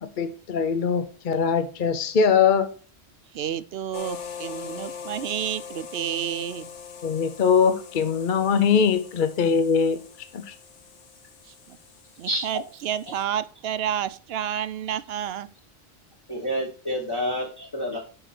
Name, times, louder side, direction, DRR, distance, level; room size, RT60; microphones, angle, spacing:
voice 1, 0.0-2.7 7.0-10.0 10.3-10.5, left 6 dB, 50° left, 0.8 m, -22 dB
voice 2, 3.3-6.7 11.5-11.8 12.2-15.5, right 10 dB, 70° right, 0.8 m, -30 dB
sound 1, 3.9-13.2, left 7 dB, 90° left, 1.3 m, -42 dB
voice 3, 16.3-18.0, equal, 20° left, 1.3 m, -28 dB
7.8 x 4.9 x 5.9 m
omnidirectional pair, 1.2 m